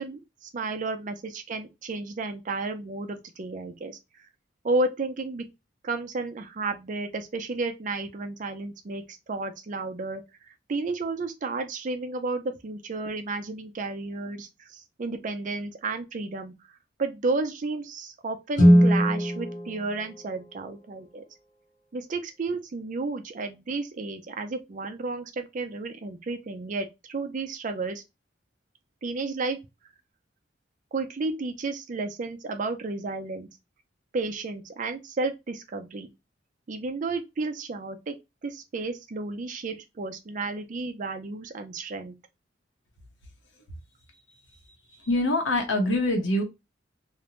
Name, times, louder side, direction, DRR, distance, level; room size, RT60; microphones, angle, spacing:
voice 1, 0.0-4.0 4.6-5.4 5.8-10.2 10.7-16.5 17.0-21.2 21.9-28.0 29.0-29.6 30.9-33.5 34.1-36.1 36.7-38.2 38.4-42.1, right 3 dB, 45° right, 0.4 m, -32 dB
Guitar, 18.5-21.1, equal, 45° left, 0.7 m, -22 dB
voice 2, 44.9-46.4, left 1 dB, 90° left, 0.8 m, -24 dB
2.5 x 2.0 x 2.9 m
head